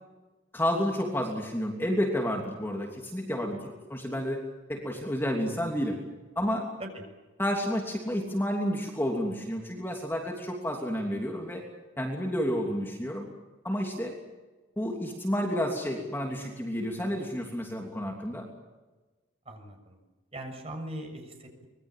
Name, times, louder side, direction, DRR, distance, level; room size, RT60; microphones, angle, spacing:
voice 1, 0.5-6.0 6.3-6.7 7.4-11.6 12.0-13.3 13.6-14.2 14.8-18.4, equal, 10° left, 1 dB, 3.0 m, -30 dB
voice 2, 19.4-20.0 20.3-21.7, right 1 dB, 30° right, 4 dB, 6.7 m, -40 dB
25.5 x 22.0 x 7.6 m, 1.2 s
head